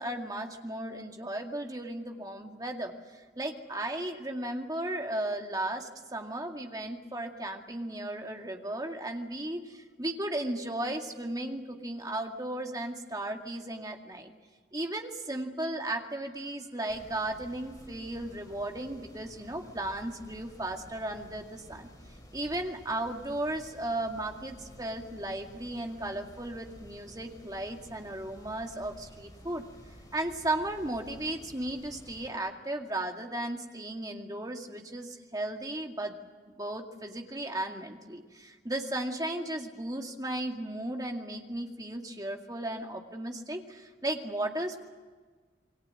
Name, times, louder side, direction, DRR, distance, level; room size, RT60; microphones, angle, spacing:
voice 1, 0.0-14.3 14.7-21.9 22.3-29.6 30.1-36.1 36.5-44.8, right 1 dB, 20° right, 3 dB, 2.2 m, -35 dB
sound 1, 16.9-32.3, equal, 20° left, 5.1 m, -52 dB
28.5 x 22.0 x 7.7 m, 1.5 s
head